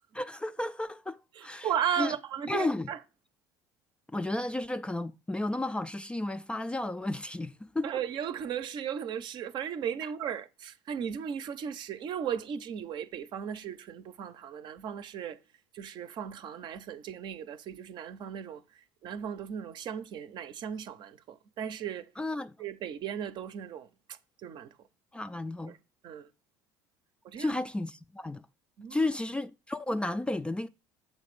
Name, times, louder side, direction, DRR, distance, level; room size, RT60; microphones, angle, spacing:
voice 1, 0.1-1.7 2.0-2.1 2.5-2.9 4.1-7.9 22.2-22.5 25.1-25.7 27.4-28.4 28.9-30.7, left 2 dB, 10° left, 0.3 m, -33 dB
voice 2, 1.4-3.0 7.8-15.4 15.7-22.1 22.6-24.7 25.7-25.8 26.0-26.3 27.2-27.5 28.8-29.1, right 8 dB, 50° right, 0.6 m, -36 dB
7.5 x 3.2 x 5.1 m
hypercardioid pair, 65°, 10 cm